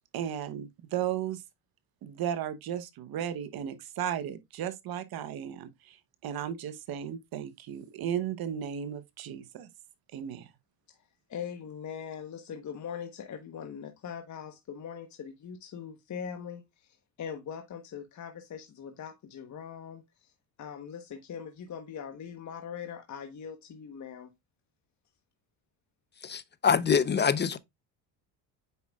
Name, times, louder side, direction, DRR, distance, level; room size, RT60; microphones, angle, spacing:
voice 1, 0.1-1.4 2.0-6.0 6.2-9.7 10.1-10.5, right 9 dB, 55° right, 1.0 m, -35 dB
voice 2, 11.3-20.3 20.6-24.3, left 7 dB, 40° left, 1.2 m, -41 dB
voice 3, 26.2-27.6, left 6 dB, 25° left, 0.8 m, -25 dB
8.1 x 5.6 x 2.4 m
supercardioid pair, 70°, 44 cm